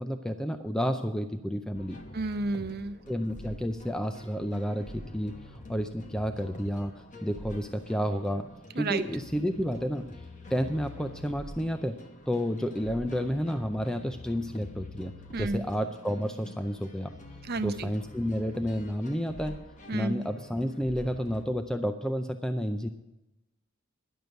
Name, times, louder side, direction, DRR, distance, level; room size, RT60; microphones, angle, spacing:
voice 1, 0.0-2.0 3.1-8.4 8.8-10.0 10.5-11.9 12.3-15.1 15.4-17.1 17.6-19.6 19.9-22.9, equal, 5° left, 7 dB, 0.4 m, -31 dB
sound 1, 1.7-21.5, left 1 dB, 40° left, 1.0 m, -46 dB
voice 2, 2.1-3.0 8.7-9.0 15.3-15.6 17.5-17.9 19.9-20.2, right 3 dB, 50° right, 10 dB, 0.7 m, -31 dB
11.0 x 6.7 x 9.0 m, 0.98 s
head